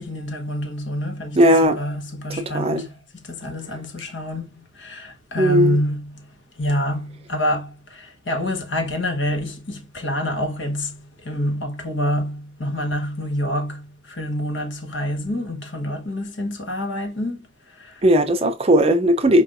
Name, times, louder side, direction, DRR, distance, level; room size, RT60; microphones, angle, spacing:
voice 1, 0.0-2.9 3.2-6.3 6.6-18.0, left 1 dB, 70° left, 1.1 m, -27 dB
voice 2, 1.4-1.8 2.5-2.9 5.4-5.8 18.0-19.4, equal, 30° right, 0.5 m, -17 dB
4.8 x 2.5 x 2.6 m
head